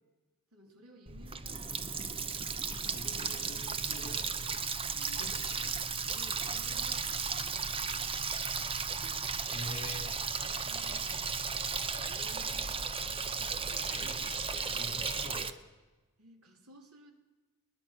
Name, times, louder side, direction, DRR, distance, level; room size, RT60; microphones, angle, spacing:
voice 1, 0.5-2.4 4.7-5.9 6.1-8.2 10.3-11.3 12.1-15.0 16.2-17.1, right 1 dB, 85° right, 2 dB, 3.5 m, -57 dB
Water tap faucet, 1.1-15.5, right 5 dB, 25° right, 0.9 m, -35 dB
voice 2, 2.6-4.6 5.2-5.7 9.5-10.1 13.9-15.5, left 1 dB, 70° left, 4 dB, 3.8 m, -46 dB
21.5 x 20.5 x 6.0 m, 1.2 s
head